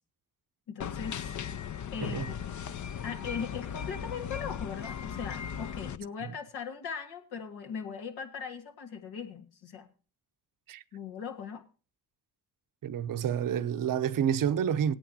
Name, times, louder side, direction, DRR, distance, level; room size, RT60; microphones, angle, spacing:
voice 1, 0.7-1.3 1.9-2.6 3.0-9.9 10.9-11.6, left 6 dB, 80° left, 1.7 m, -39 dB
sound 1, 0.8-6.0, left 8 dB, 50° left, 0.7 m, -37 dB
voice 2, 12.8-14.9, right 9 dB, 60° right, 0.8 m, -29 dB
18.0 x 9.0 x 2.8 m
supercardioid pair, 50°, 38 cm